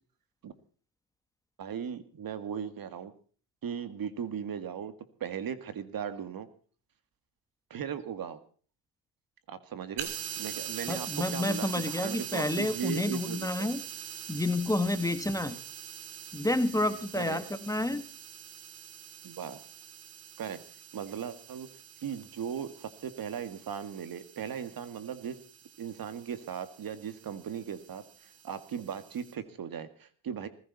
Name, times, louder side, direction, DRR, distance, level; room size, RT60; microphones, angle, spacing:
voice 1, 1.6-3.1 3.6-4.9 5.2-6.5 7.7-8.4 9.5-10.1 10.4-13.7 15.4-15.6 17.1-17.4 19.2-19.6 20.4-20.6 20.9-21.7 22.0-25.4 25.8-30.5, right 8 dB, 45° right, 11 dB, 2.1 m, -38 dB
sound 1, 10.0-29.3, right 9 dB, 75° right, 3.3 m, -43 dB
voice 2, 10.9-13.8 14.3-15.6 16.3-18.0, left 2 dB, 5° left, 10 dB, 1.4 m, -29 dB
20.0 x 15.5 x 4.2 m, 0.42 s
cardioid pair, 100°, 48 cm